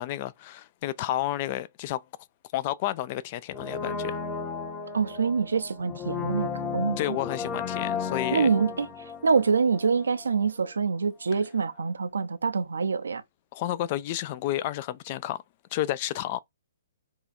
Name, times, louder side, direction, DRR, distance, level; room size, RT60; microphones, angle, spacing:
voice 1, 0.0-2.0 2.5-4.2 7.0-8.5 13.5-15.4 15.7-16.4, left 14 dB, 40° left, 0.3 m, -31 dB
Brass instrument, 3.5-10.4 10.6-10.7, left 5 dB, 15° left, 0.7 m, -34 dB
voice 2, 4.9-7.0 8.3-8.9 9.2-13.2, right 5 dB, 85° right, 0.5 m, -25 dB
2.8 x 2.3 x 4.1 m
hypercardioid pair, 140°, 0 cm